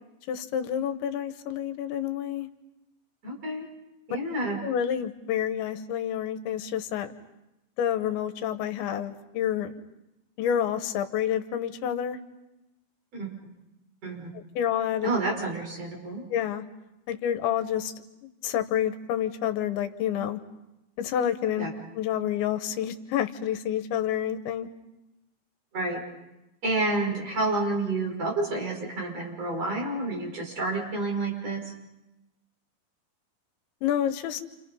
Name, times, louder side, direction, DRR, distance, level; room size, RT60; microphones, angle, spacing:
voice 1, 0.3-2.5 4.6-7.1 7.8-9.8 10.4-12.2 14.4-15.1 16.3-16.6 17.1-17.9 18.4-20.4 21.0-21.7 22.0-24.7 33.8-34.4, left 9 dB, 80° left, 9 dB, 3.4 m, -28 dB
voice 2, 3.2-3.6 4.1-4.6 13.1-13.3 14.0-14.3 15.0-16.2 21.6-21.7 25.7-26.0 26.6-31.6, right 2 dB, 35° right, -1 dB, 7.0 m, -29 dB
29.5 x 28.5 x 5.6 m, 0.94 s
omnidirectional pair, 5.3 m